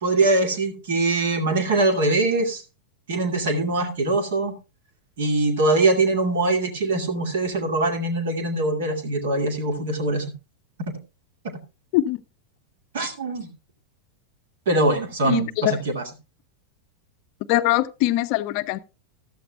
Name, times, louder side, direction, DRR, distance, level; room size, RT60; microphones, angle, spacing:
voice 1, 0.0-2.6 3.1-4.6 5.2-10.3 10.8-11.0 11.4-11.6 12.9-13.5 14.7-16.0, right 2 dB, 60° right, 2.2 m, -22 dB
voice 2, 15.2-15.8 17.5-18.8, left 15 dB, 45° left, 0.6 m, -22 dB
14.5 x 12.5 x 2.3 m
figure-of-eight pair, 90°, 0 cm